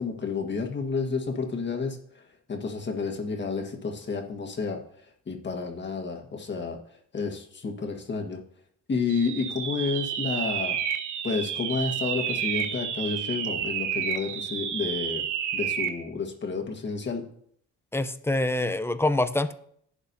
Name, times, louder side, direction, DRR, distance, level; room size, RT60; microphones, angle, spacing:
voice 1, 0.0-2.2 2.5-4.8 5.3-6.8 7.1-8.4 8.9-10.8 11.2-15.2 15.5-17.2, left 4 dB, 35° left, 2 dB, 1.6 m, -30 dB
sound 1, 9.1-16.0, right 8 dB, 80° right, 0.9 m, -30 dB
voice 2, 17.9-19.5, left 2 dB, 10° left, 11 dB, 0.6 m, -25 dB
11.5 x 8.5 x 2.8 m, 0.67 s
cardioid pair, 90°, 30 cm